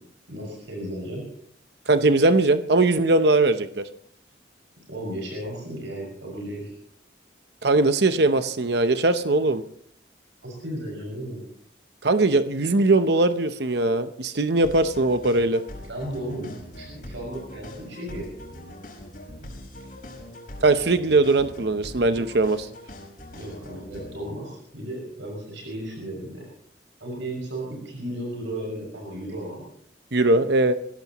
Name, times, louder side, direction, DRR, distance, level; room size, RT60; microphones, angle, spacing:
voice 1, 0.3-1.2 4.9-6.7 10.4-11.4 15.9-18.3 23.4-26.4 27.0-29.6, right 1 dB, 85° right, -1 dB, 6.1 m, -34 dB
voice 2, 1.9-3.8 7.6-9.6 12.0-15.6 20.6-22.7 30.1-30.7, right 2 dB, 60° right, 9 dB, 0.8 m, -20 dB
sound 1, 14.6-24.2, left 1 dB, 45° left, 5.0 m, -42 dB
23.0 x 16.5 x 3.0 m, 0.66 s
head